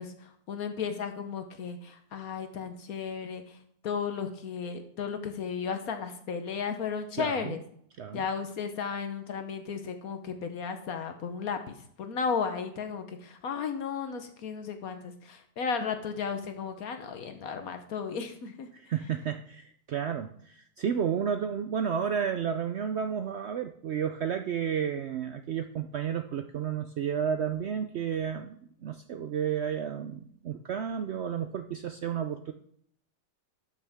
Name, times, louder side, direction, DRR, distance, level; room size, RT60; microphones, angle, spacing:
voice 1, 0.0-7.6 8.1-18.7, left 6 dB, 65° left, 7 dB, 1.3 m, -34 dB
voice 2, 7.2-7.5 8.0-8.2 18.7-28.6 28.8-32.5, right 8 dB, 75° right, 7 dB, 0.6 m, -32 dB
12.0 x 6.7 x 3.5 m, 0.65 s
omnidirectional pair, 1.7 m